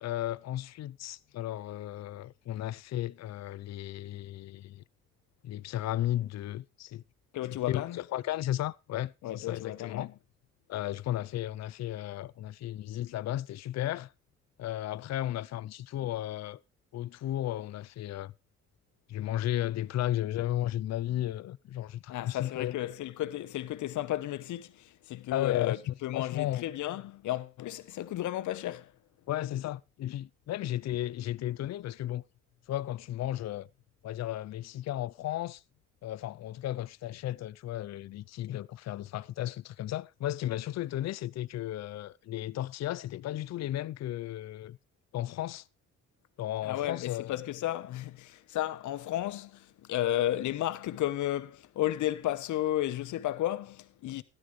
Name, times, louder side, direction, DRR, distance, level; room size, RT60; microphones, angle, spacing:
voice 1, 0.0-4.8 5.4-7.0 7.7-10.1 10.7-14.1 14.6-16.6 16.9-18.3 19.1-22.9 25.3-26.6 29.3-32.2 32.7-33.7 34.0-35.6 36.0-44.8 45.1-45.6 46.4-47.3, left 13 dB, 60° left, 0.5 m, -34 dB
voice 2, 7.3-8.0 9.2-10.1 22.1-28.9 46.6-54.2, left 13 dB, 75° left, 1.0 m, -33 dB
12.5 x 11.5 x 3.1 m
cardioid pair, 90°, 30 cm